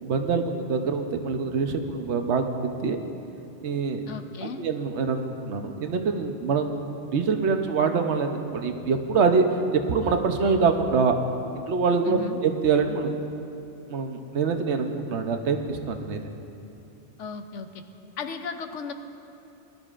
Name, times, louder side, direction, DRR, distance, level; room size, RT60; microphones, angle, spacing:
voice 1, 0.0-3.0 3.6-4.0 4.4-9.5 9.7-11.1 11.5-13.2 13.9-16.2, right 5 dB, 70° right, 6 dB, 1.1 m, -25 dB
voice 2, 4.1-4.6 12.0-12.4 17.2-17.8 18.2-18.9, left 6 dB, 90° left, 8 dB, 1.1 m, -35 dB
19.5 x 12.5 x 2.5 m, 2.8 s
omnidirectional pair, 1.2 m